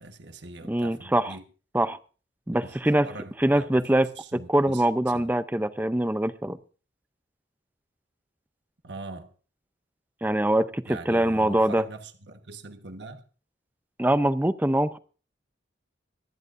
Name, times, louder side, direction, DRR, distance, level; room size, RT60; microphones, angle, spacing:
voice 1, 0.0-1.5 2.6-3.9 4.1-5.3 8.8-9.3 10.9-13.2, right 2 dB, 65° right, 1.3 m, -42 dB
voice 2, 0.7-1.3 1.7-2.0 2.5-3.1 3.4-4.1 4.3-6.6 10.2-11.8 14.0-15.0, right 1 dB, 10° right, 0.5 m, -23 dB
24.5 x 11.0 x 2.6 m
head